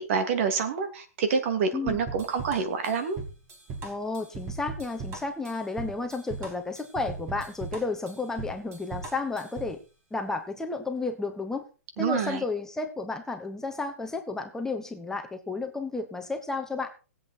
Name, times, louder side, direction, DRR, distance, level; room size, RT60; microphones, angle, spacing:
voice 1, 0.0-3.2 12.0-12.4, right 5 dB, 55° right, 8 dB, 2.7 m, -27 dB
sound 1, 1.9-9.8, right 4 dB, 30° right, 3.5 m, -39 dB
voice 2, 3.8-9.8 10.1-11.6 12.0-17.0, left 3 dB, 5° left, 5 dB, 1.3 m, -32 dB
18.5 x 8.1 x 4.4 m, 0.34 s
hypercardioid pair, 135°, 8 cm